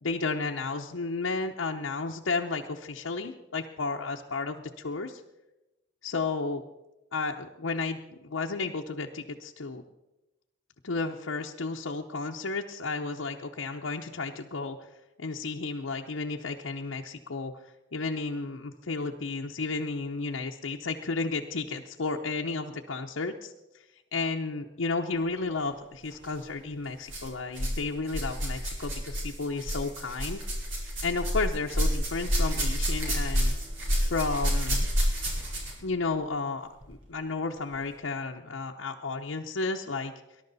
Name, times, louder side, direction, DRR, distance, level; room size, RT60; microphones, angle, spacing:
voice 1, 0.0-5.2 6.0-6.6 7.1-9.8 10.8-14.8 15.2-17.5 17.9-23.5 24.1-30.4 31.0-33.5 34.1-34.8 35.8-40.1, left 3 dB, 85° left, 1 dB, 0.8 m, -32 dB
sound 1, 26.1-26.3 27.1-27.8 28.1-35.9 36.8-36.9 37.7-37.8, equal, 80° right, 4.5 m, -29 dB
19.5 x 11.5 x 4.0 m, 0.96 s
head